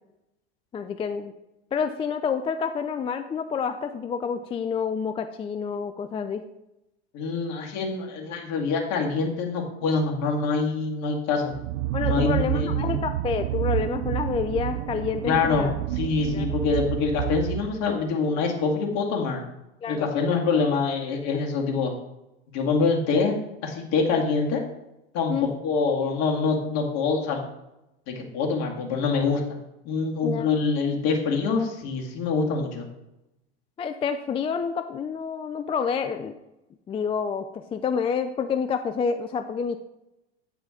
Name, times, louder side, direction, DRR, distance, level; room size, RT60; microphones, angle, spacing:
voice 1, 0.7-1.3 1.7-6.4 11.9-15.7 16.3-16.5 19.8-20.1 25.3-25.5 30.2-30.5 33.8-36.3 36.9-39.8, left 6 dB, 20° left, 8 dB, 0.4 m, -28 dB
voice 2, 7.1-11.5 12.0-13.0 15.3-15.7 15.9-19.4 19.9-21.9 22.5-24.6 25.1-25.3 25.6-27.4 28.1-29.4 29.9-32.9, left 4 dB, 55° left, 1 dB, 2.1 m, -25 dB
sound 1, 11.5-18.0, right 15 dB, 70° right, 0.5 m, -29 dB
9.3 x 5.0 x 5.0 m, 0.91 s
hypercardioid pair, 95°, 31 cm